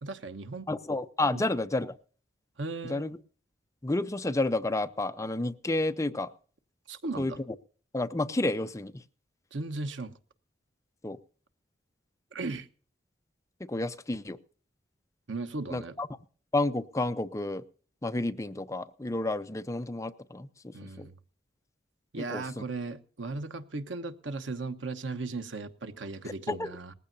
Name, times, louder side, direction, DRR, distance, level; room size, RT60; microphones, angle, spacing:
voice 1, 0.0-0.7 1.3-1.4 2.6-3.0 6.9-7.4 9.5-10.1 12.3-12.7 15.3-15.9 20.7-21.1 22.1-26.9, right 3 dB, 90° right, 10 dB, 1.1 m, -36 dB
voice 2, 0.7-1.9 2.8-3.2 3.8-6.3 7.2-7.3 7.9-9.0 11.0-11.2 13.7-14.4 15.7-16.1 16.5-17.6 18.0-21.1 22.3-22.6 26.5-26.7, left 2 dB, 15° left, 11 dB, 0.6 m, -30 dB
19.5 x 15.0 x 2.7 m, 0.43 s
head